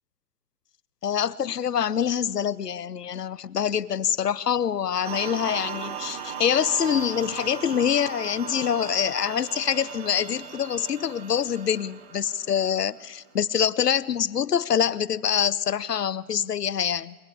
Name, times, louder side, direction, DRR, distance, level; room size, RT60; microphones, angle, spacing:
voice 1, 1.0-17.2, left 8 dB, 85° left, 18 dB, 0.8 m, -25 dB
sound 1, 5.0-13.4, right 8 dB, 40° right, 1.4 m, -37 dB
23.0 x 17.0 x 8.6 m, 1.3 s
figure-of-eight pair, 125°, 46 cm